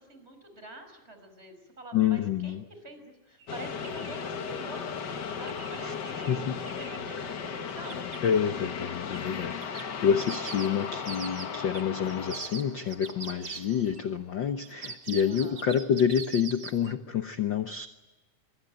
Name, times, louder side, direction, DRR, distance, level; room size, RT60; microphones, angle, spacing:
voice 1, 0.0-8.1 15.2-15.7, right 1 dB, 20° right, 7 dB, 5.7 m, -47 dB
voice 2, 1.9-2.6 5.8-5.9 6.3-6.6 8.2-17.9, left 8 dB, 85° left, 8 dB, 1.0 m, -28 dB
sound 1, 3.4-3.5 3.8-4.3 5.4-7.1 7.7-8.3 9.1-9.3 9.6-14.0 14.6-16.9, right 5 dB, 50° right, 1.0 m, -43 dB
sound 2, 3.5-13.7, left 6 dB, 50° left, 1.3 m, -36 dB
24.5 x 24.0 x 9.2 m, 1.1 s
omnidirectional pair, 3.7 m